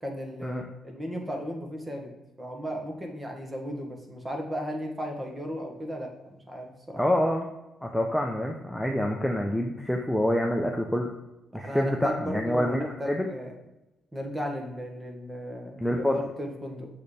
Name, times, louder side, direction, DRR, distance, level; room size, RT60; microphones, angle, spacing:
voice 1, 0.0-2.1 2.4-7.0 11.5-13.5 14.1-16.9, equal, 15° right, 2 dB, 1.7 m, -35 dB
voice 2, 7.0-7.4 7.8-11.1 11.5-13.3 15.8-16.2, left 1 dB, ahead, 1 dB, 0.8 m, -26 dB
6.7 x 6.6 x 3.4 m, 0.97 s
cardioid pair, 90°, 0 cm